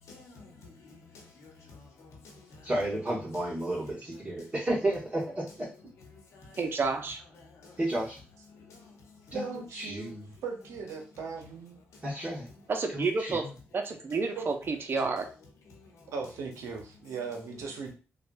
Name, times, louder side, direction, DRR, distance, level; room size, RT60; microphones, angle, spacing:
voice 1, 0.1-2.7 3.1-3.5 3.8-4.5 5.5-6.7 7.3-7.9 8.5-9.4 10.1-10.4 11.9-12.7 15.6-16.1 17.3-17.7, left 3 dB, 80° left, 1.0 m, -53 dB
voice 2, 2.6-5.7 7.8-8.2 9.3-9.5 9.7-10.2 12.0-12.5 12.9-13.5, right 1 dB, 25° right, 1.6 m, -32 dB
voice 3, 6.6-7.2 12.7-13.5 13.7-15.3, right 4 dB, 50° right, 0.7 m, -30 dB
voice 4, 9.3-11.8 14.4-14.5 16.1-17.9, right 5 dB, 85° right, 0.8 m, -38 dB
3.4 x 2.4 x 2.6 m
cardioid pair, 60°, 5 cm